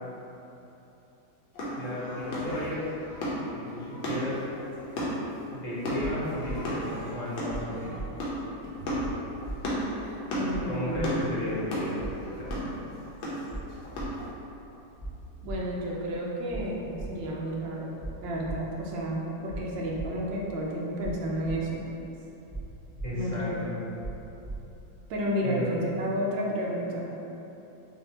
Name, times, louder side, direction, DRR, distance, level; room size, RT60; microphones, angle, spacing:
sound 1, 1.5-14.3, equal, 85° left, 1.7 m, -34 dB
voice 1, 1.7-2.8 3.5-4.3 5.5-8.0 10.7-12.0 12.3-12.7 23.0-23.7 25.4-25.7, left 1 dB, 45° left, -9 dB, 1.2 m, -34 dB
sound 2, 6.0-6.1 6.4-6.5 7.5-7.6 7.9-8.1 9.0-9.1 9.4-9.6 10.5-10.6 10.9-11.0 12.0-12.1 12.4-12.6 13.5-13.6 13.9-14.1 15.0-15.1 15.4-15.6 16.5-16.6 16.9-17.1 18.0-18.1 18.4-18.5 19.5-19.6 19.9-20.1 21.0-21.1 21.4-21.5 22.5-22.6 22.9-23.1 24.0-24.1 24.4-24.5, right 2 dB, 15° right, 0.7 m, -37 dB
voice 2, 10.3-11.5 15.4-17.9 18.2-21.8 23.1-23.6 25.1-27.1, equal, 70° right, -3 dB, 1.4 m, -31 dB
6.5 x 2.7 x 2.8 m, 3.0 s
omnidirectional pair, 2.2 m